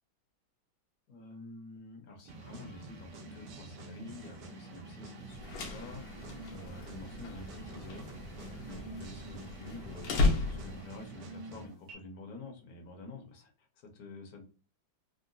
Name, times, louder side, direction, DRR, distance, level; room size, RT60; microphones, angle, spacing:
voice 1, 1.1-10.2 10.5-14.4, left 2 dB, 60° left, 2 dB, 1.0 m, -49 dB
sound 1, 2.3-12.0, right 2 dB, 70° right, 1.2 m, -47 dB
sound 2, 5.3-11.0, left 3 dB, 80° left, 1.4 m, -35 dB
3.7 x 2.1 x 2.5 m, 0.38 s
omnidirectional pair, 2.1 m